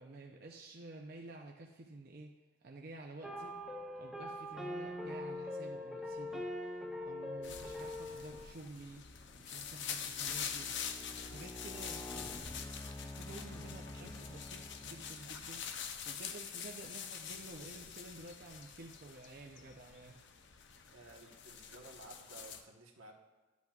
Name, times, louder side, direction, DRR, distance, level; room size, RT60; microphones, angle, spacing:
voice 1, 0.0-2.3 2.6-3.6 3.9-9.0 9.3-10.7 11.2-12.7 13.0-20.2, right 2 dB, 50° right, 1 dB, 0.6 m, -51 dB
sound 1, 3.2-8.5, left 1 dB, ahead, 0.7 m, -42 dB
sound 2, 7.4-22.6, left 7 dB, 60° left, 0.6 m, -45 dB
sound 3, 8.0-8.2 8.8-15.6, left 1 dB, 15° left, 0.3 m, -49 dB
voice 2, 20.9-23.1, right 2 dB, 80° right, 1 dB, 1.2 m, -54 dB
12.0 x 8.2 x 2.4 m, 1.3 s
head